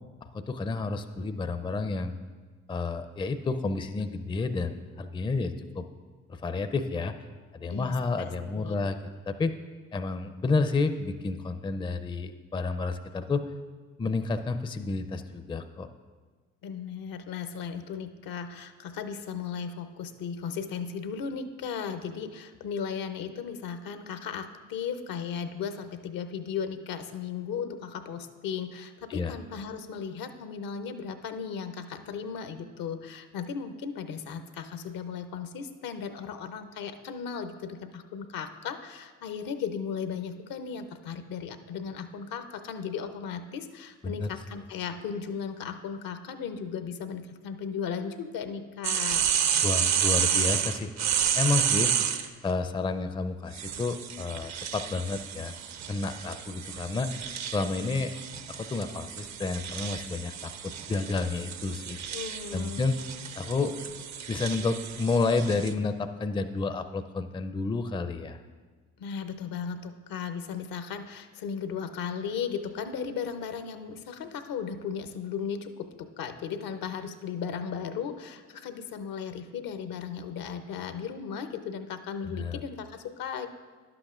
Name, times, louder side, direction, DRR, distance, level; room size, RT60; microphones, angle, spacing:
voice 1, 0.3-2.1 2.7-5.9 6.3-7.1 7.5-9.0 9.3-9.5 9.9-13.4 14.0-15.9 29.1-29.4 44.0-44.3 49.6-50.9 51.4-51.9 52.4-55.5 55.9-57.1 57.5-58.1 58.5-62.0 62.5-63.0 63.4-63.8 64.3-68.4 82.3-82.6, left 3 dB, 15° left, 10 dB, 0.4 m, -30 dB
voice 2, 7.7-8.8 16.6-49.2 62.1-62.8 69.0-83.5, left 6 dB, 65° left, 9 dB, 0.7 m, -36 dB
sound 1, 48.8-52.3 53.5-65.7, right 8 dB, 50° right, 0.6 m, -31 dB
11.5 x 7.9 x 2.4 m, 1.4 s
hypercardioid pair, 50°, 37 cm